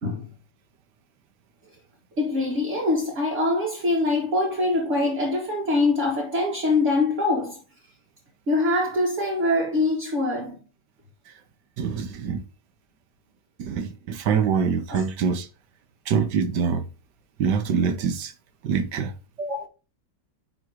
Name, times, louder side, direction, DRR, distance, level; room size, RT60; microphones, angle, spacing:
voice 1, 2.2-7.6 8.5-10.6 14.9-15.0 19.4-19.7, left 2 dB, 45° right, 2.0 m, -24 dB
voice 2, 11.8-12.4 13.6-15.5 16.1-16.9 17.4-18.3 18.6-19.1, right 6 dB, 80° right, 1.6 m, -24 dB
10.5 x 3.8 x 4.6 m
omnidirectional pair, 1.8 m